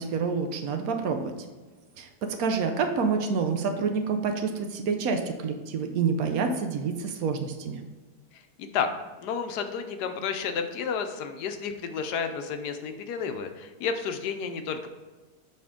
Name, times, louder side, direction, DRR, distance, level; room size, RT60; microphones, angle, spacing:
voice 1, 0.0-1.3 2.0-7.8, right 5 dB, 70° right, 5 dB, 1.0 m, -28 dB
voice 2, 8.6-8.9 9.2-14.9, left 6 dB, 85° left, 7 dB, 1.2 m, -31 dB
6.8 x 4.3 x 3.6 m, 1.3 s
omnidirectional pair, 1.7 m